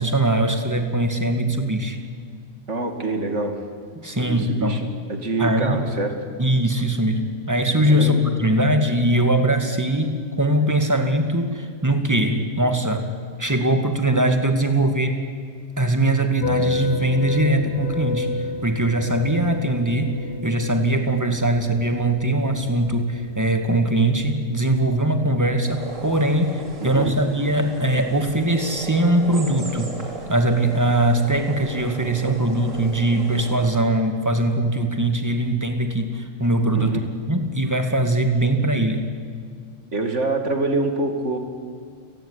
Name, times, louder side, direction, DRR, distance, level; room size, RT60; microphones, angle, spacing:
voice 1, 0.0-2.0 4.0-4.8 5.4-5.8 6.4-13.1 13.4-15.2 15.8-20.2 20.4-29.9 30.3-37.0 37.3-39.1, right 1 dB, 15° right, 6 dB, 2.2 m, -21 dB
voice 2, 2.7-3.6 4.2-6.2 7.9-8.2 26.8-27.1 36.7-37.0 39.9-41.4, right 2 dB, 65° right, 6 dB, 2.9 m, -25 dB
sound 1, 16.4-33.6, left 4 dB, 60° left, 1.7 m, -35 dB
sound 2, 25.7-33.8, right 3 dB, 90° right, 3.8 m, -37 dB
30.0 x 18.0 x 10.0 m, 2.1 s
omnidirectional pair, 1.3 m